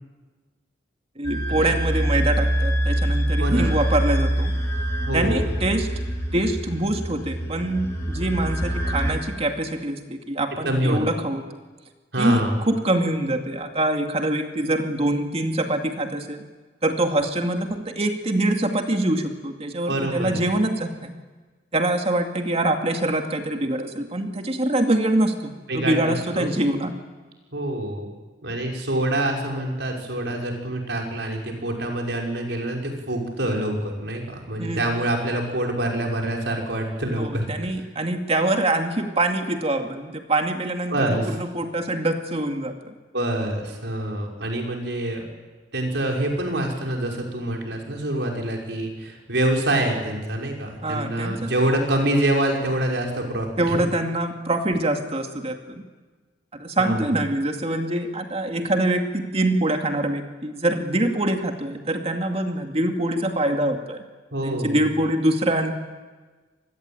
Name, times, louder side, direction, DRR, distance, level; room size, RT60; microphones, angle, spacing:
sound 1, 1.2-9.1, right 1 dB, 15° left, 6.7 m, -25 dB
voice 1, 1.2-4.5 5.1-5.9 6.3-11.4 12.2-16.4 16.8-21.1 21.7-26.9 34.6-34.8 37.2-42.9 50.8-51.5 53.6-55.8 56.5-64.0 64.4-65.7, right 1 dB, 35° right, 4 dB, 2.4 m, -24 dB
voice 2, 3.4-3.7 5.1-5.5 10.6-11.0 12.1-12.6 19.9-20.4 25.7-26.5 27.5-28.1 28.4-37.5 40.9-41.4 43.1-45.3 45.7-53.8 56.8-57.1 64.3-64.8, right 1 dB, 75° right, 1 dB, 5.9 m, -26 dB
26.5 x 21.0 x 9.0 m, 1.3 s
head